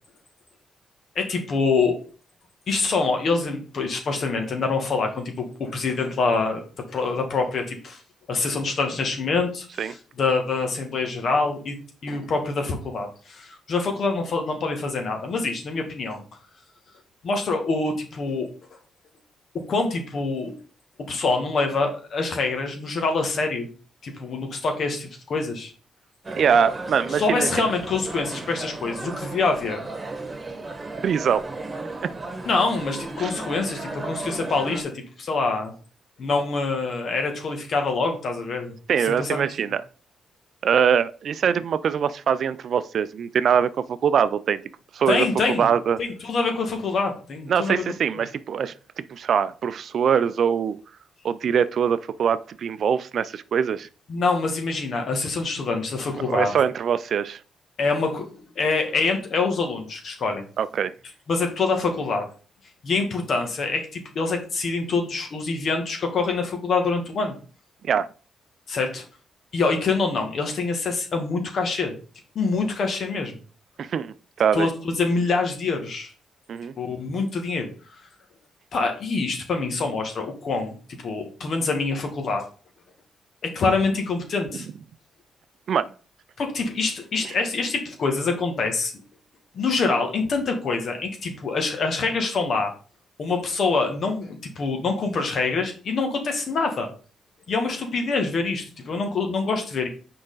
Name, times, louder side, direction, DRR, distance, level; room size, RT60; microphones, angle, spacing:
voice 1, 1.2-2.0 2.7-6.6 6.9-8.0 8.3-11.8 12.0-16.2 17.2-18.5 19.5-20.5 21.0-23.7 24.0-25.7 27.1-29.8 32.4-34.9 35.2-35.7 36.2-38.8 39.0-39.7 45.1-45.7 46.0-47.8 48.1-48.2 54.1-56.5 57.8-60.4 61.3-62.3 62.8-67.4 68.7-69.0 69.5-72.0 72.4-73.4 74.5-76.1 76.8-77.7 78.7-82.5 83.4-84.7 86.4-88.9 89.5-92.7 93.2-96.9 97.5-99.9, left 4 dB, 60° left, 1.9 m, -25 dB
sound 1, 26.2-34.8, right 2 dB, 30° right, 1.6 m, -34 dB
voice 2, 26.4-27.5 31.0-31.5 33.2-33.3 38.9-39.8 40.6-44.6 44.9-45.3 45.6-46.0 47.5-48.7 49.1-50.8 51.2-53.9 56.3-57.4 60.6-60.9 67.8-68.1 73.8-74.7 76.5-76.7 85.7-85.9, right 7 dB, 65° right, 0.4 m, -23 dB
6.3 x 4.9 x 4.0 m
supercardioid pair, 55°, 0 cm